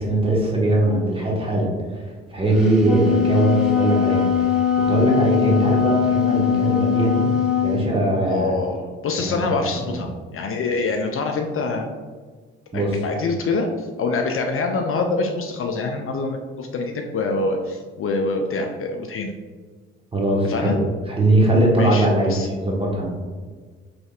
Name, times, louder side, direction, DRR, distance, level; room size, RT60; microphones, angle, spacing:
voice 1, 0.0-1.7 2.3-4.2 4.5-7.3 7.6-8.5 9.2-9.4 9.8-9.9 12.7-13.0 20.1-20.8 21.1-23.0, right 1 dB, 20° right, -3 dB, 1.2 m, -20 dB
Wind instrument woodwind instrument, 2.6-7.8, left 8 dB, ahead, 0.9 m, -21 dB
voice 2, 8.3-8.8 9.0-11.9 12.7-19.3 20.4-20.8 21.8-22.5, left 3 dB, 45° left, 3 dB, 0.5 m, -25 dB
4.0 x 3.2 x 2.4 m, 1.5 s
hypercardioid pair, 55°, 30 cm